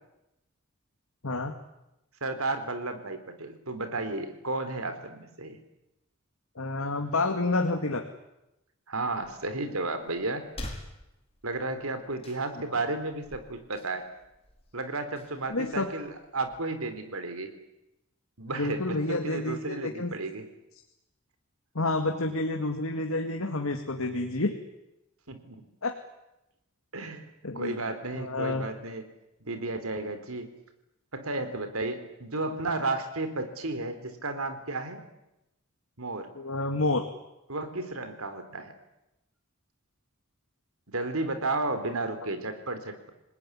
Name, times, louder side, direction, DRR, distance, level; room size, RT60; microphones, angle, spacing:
voice 1, 2.2-5.6 8.9-10.5 11.4-14.1 14.7-17.5 18.4-20.4 23.4-23.5 25.3-25.6 26.9-27.2 27.5-29.0 29.5-30.5 31.1-35.0 36.0-36.3 37.5-38.7 40.9-43.1, right 2 dB, 85° right, 9 dB, 3.7 m, -33 dB
voice 2, 6.6-8.0 15.5-15.9 18.6-20.1 21.7-24.5 25.8-26.0 27.4-27.8 28.1-28.7 36.3-37.1, left 2 dB, 80° left, 4 dB, 2.2 m, -29 dB
sound 1, 9.1-16.6, left 1 dB, 30° left, 4.9 m, -48 dB
27.0 x 19.5 x 9.9 m, 0.90 s
head